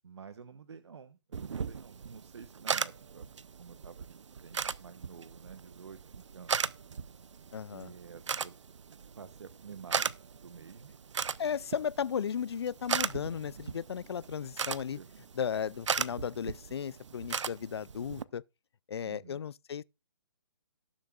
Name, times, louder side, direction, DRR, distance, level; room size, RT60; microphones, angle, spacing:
voice 1, 0.0-3.3 3.6-6.6 7.7-8.5 9.1-10.9 14.6-15.1 19.0-19.4, right 6 dB, 65° right, 1.0 m, -50 dB
sound 1, 1.3-18.2, right 6 dB, 85° right, 0.6 m, -38 dB
voice 2, 7.5-7.9 11.4-15.0 15.3-18.4 18.9-19.8, left 8 dB, 60° left, 0.4 m, -35 dB
18.0 x 7.2 x 2.4 m
hypercardioid pair, 170°, 15 cm